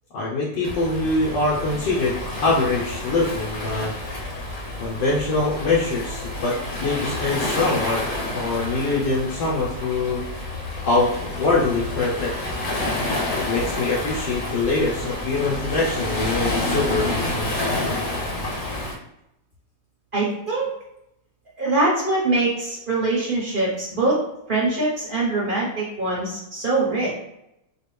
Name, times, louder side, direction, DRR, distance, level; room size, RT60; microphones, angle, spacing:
voice 1, 0.1-3.9 4.8-8.0 8.3-10.2 10.9-12.3 13.5-17.5, left 3 dB, 80° left, -5 dB, 1.5 m, -23 dB
Waves surf, 0.6-18.9, left 1 dB, 60° left, 1.2 m, -29 dB
voice 2, 20.1-20.7 21.6-24.2 24.5-27.1, right 2 dB, 35° right, -5 dB, 1.0 m, -23 dB
4.2 x 2.4 x 3.2 m, 0.85 s
omnidirectional pair, 2.0 m